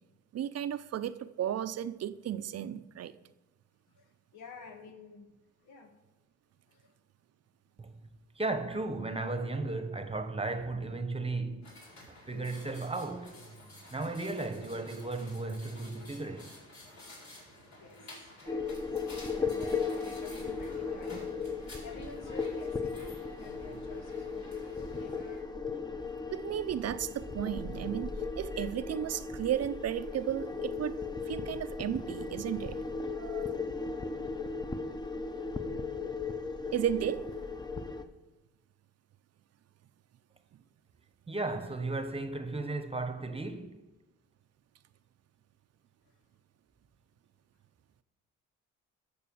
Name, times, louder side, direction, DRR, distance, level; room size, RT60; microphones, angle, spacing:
voice 1, 0.3-3.1 26.3-32.8 33.2-33.6 36.7-37.3, right 10 dB, 55° right, 0.6 m, -34 dB
voice 2, 4.0-5.3 5.6-5.9 6.7-6.9 17.8-19.0 19.3-21.4 21.8-25.4, left 4 dB, 85° left, 1.9 m, -51 dB
voice 3, 8.3-11.7 12.1-13.4 13.9-16.5 41.3-43.8, right 2 dB, 20° right, 1.1 m, -35 dB
sound 1, 11.6-25.4, left 1 dB, 65° left, 4.8 m, -52 dB
sound 2, 18.5-38.0, left 4 dB, 15° left, 0.9 m, -37 dB
13.0 x 6.8 x 7.0 m
cardioid pair, 90°, 30 cm